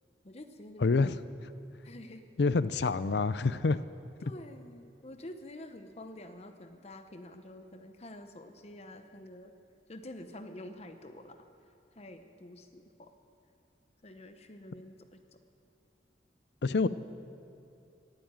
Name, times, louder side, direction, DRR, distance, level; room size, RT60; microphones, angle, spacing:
voice 1, 0.2-1.1 1.8-2.3 2.8-2.9 4.2-9.5 9.9-11.5 11.9-13.1 14.0-15.2, left 1 dB, 35° left, 8 dB, 0.8 m, -48 dB
voice 2, 0.8-1.2 2.4-3.8 16.6-16.9, left 4 dB, 65° left, 15 dB, 0.5 m, -27 dB
17.5 x 8.8 x 9.0 m, 2.6 s
head